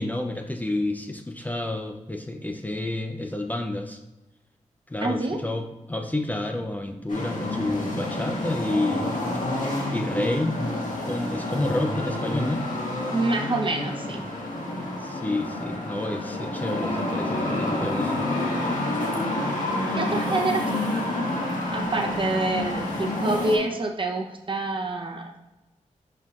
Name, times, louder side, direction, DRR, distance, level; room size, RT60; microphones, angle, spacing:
voice 1, 0.0-4.0 4.9-9.1 9.9-10.6 11.0-12.7 15.0-18.3, left 1 dB, 15° left, 3 dB, 0.6 m, -29 dB
voice 2, 5.0-5.4 13.1-14.2 19.9-20.7 21.7-25.4, right 2 dB, 40° right, 2 dB, 0.8 m, -27 dB
sound 1, 7.1-23.6, left 1 dB, 85° left, 1.7 m, -28 dB
11.0 x 4.5 x 2.5 m, 1.0 s
wide cardioid pair, 120°, 13 cm